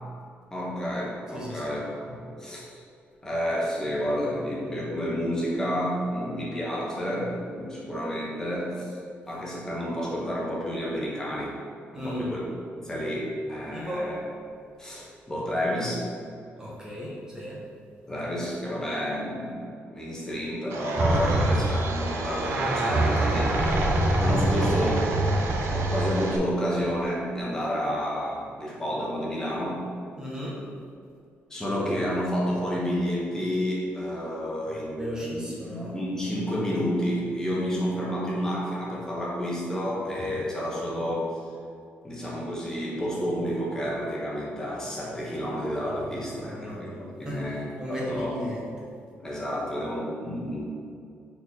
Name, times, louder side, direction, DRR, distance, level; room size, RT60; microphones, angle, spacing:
voice 1, 0.5-2.8 3.2-9.0 9.3-11.5 11.9-12.4 12.8-14.2 14.8-16.0 18.1-23.7 24.2-25.2 25.7-29.9 31.5-35.4 35.7-41.4 42.0-48.4 49.2-50.6, equal, 15° left, -4 dB, 1.2 m, -30 dB
voice 2, 1.3-1.7 11.9-12.3 13.7-14.1 16.6-17.6 21.3-21.5 30.2-30.6 34.7-35.9 37.5-37.8 46.4-48.6, equal, 15° right, -5 dB, 1.0 m, -36 dB
Domestic sounds home sounds, 20.7-26.4, right 3 dB, 80° right, 0.7 m, -35 dB
sound 1, 21.0-26.2 26.9-27.0, right 1 dB, 45° right, 0.8 m, -24 dB
4.6 x 4.4 x 5.4 m, 2.3 s
cardioid pair, 155°, 5 cm